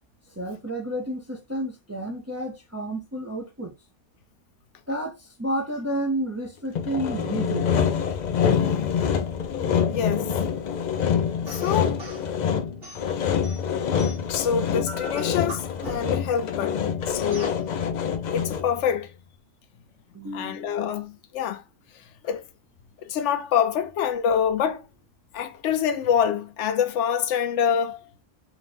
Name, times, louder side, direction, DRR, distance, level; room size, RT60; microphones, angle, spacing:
voice 1, 0.4-3.7 4.9-7.7 20.1-20.8, right 1 dB, 20° right, 0.5 m, -31 dB
Sawing, 6.8-18.8, left 7 dB, 60° left, 0.4 m, -26 dB
voice 2, 9.9-10.3 11.5-12.0 14.3-17.6 18.3-19.1 20.3-21.6 22.2-22.4 23.1-24.8 25.3-28.0, left 8 dB, 80° left, 0.9 m, -26 dB
sound 1, 11.5-12.3 12.8-14.4 14.9-16.3 17.3-17.6, right 1 dB, 55° right, 1.7 m, -40 dB
4.1 x 2.6 x 3.4 m
omnidirectional pair, 1.2 m